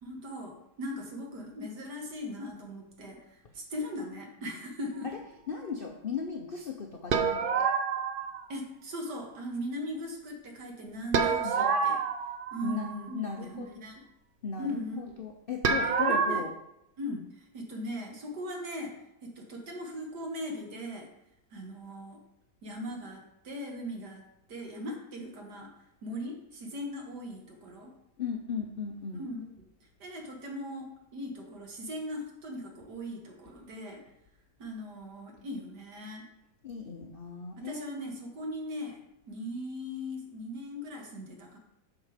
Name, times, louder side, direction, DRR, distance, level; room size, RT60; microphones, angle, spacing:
voice 1, 0.0-5.1 8.5-12.0 12.5-14.0 14.6-15.2 16.1-16.5 17.0-18.9 19.2-21.1 21.5-22.2 22.6-24.2 24.5-25.7 26.0-27.9 29.1-29.4 29.8-34.0 34.6-36.2 37.6-39.0 39.3-41.6, equal, 85° right, 0 dB, 2.2 m, -39 dB
voice 2, 5.5-7.7 11.4-11.7 12.6-13.8 14.4-16.5 28.2-29.2 36.6-37.9, left 6 dB, 50° left, 2 dB, 0.7 m, -37 dB
sound 1, 7.1-8.4 11.1-13.0 15.6-16.4, right 5 dB, 55° right, 0.6 m, -27 dB
7.3 x 6.2 x 5.0 m, 0.85 s
omnidirectional pair, 1.7 m